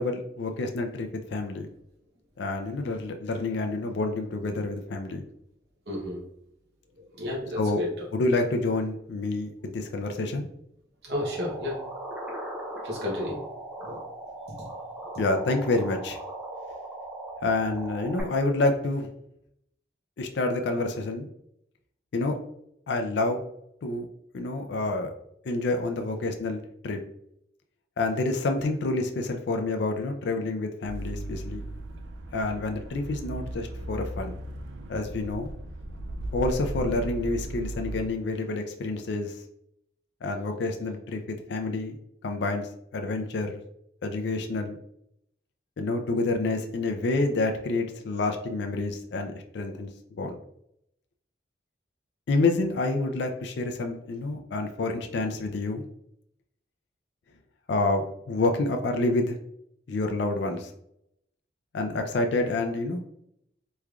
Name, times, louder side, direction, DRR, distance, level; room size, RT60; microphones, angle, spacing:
voice 1, 0.0-1.7 2.4-5.2 7.6-7.8 8.1-10.5 15.2-16.2 17.4-19.1 20.2-21.3 22.1-22.3 22.9-23.4 23.8-24.1 24.3-25.1 25.5-27.0 28.0-31.7 32.3-34.4 34.9-35.5 36.3-39.3 40.2-42.0 42.2-43.6 44.0-44.8 45.8-50.4 52.3-55.8 57.7-59.4 59.9-60.7 61.7-63.0, left 2 dB, 70° left, 4 dB, 0.4 m, -28 dB
voice 2, 5.9-6.2 7.2-7.9 11.0-11.7 12.8-13.4 13.8-14.0, left 1 dB, 60° right, -3 dB, 0.9 m, -31 dB
sound 1, 11.2-18.2, right 1 dB, 5° right, 0.5 m, -39 dB
sound 2, 30.8-38.1, right 1 dB, 80° right, 0.4 m, -36 dB
3.5 x 3.2 x 2.3 m, 0.76 s
head